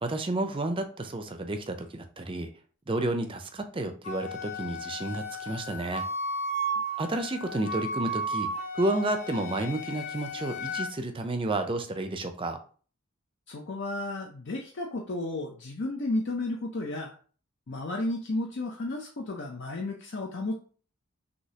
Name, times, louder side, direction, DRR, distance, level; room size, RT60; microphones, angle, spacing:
voice 1, 0.0-2.5 2.9-6.0 7.0-8.5 8.7-12.6, right 2 dB, 25° right, 7 dB, 0.5 m, -31 dB
Wind instrument woodwind instrument, 4.0-10.9, right 1 dB, 35° left, 1.0 m, -34 dB
voice 2, 13.5-17.1 17.7-20.5, left 2 dB, 60° left, 1 dB, 0.6 m, -33 dB
6.3 x 2.8 x 2.8 m, 0.41 s
head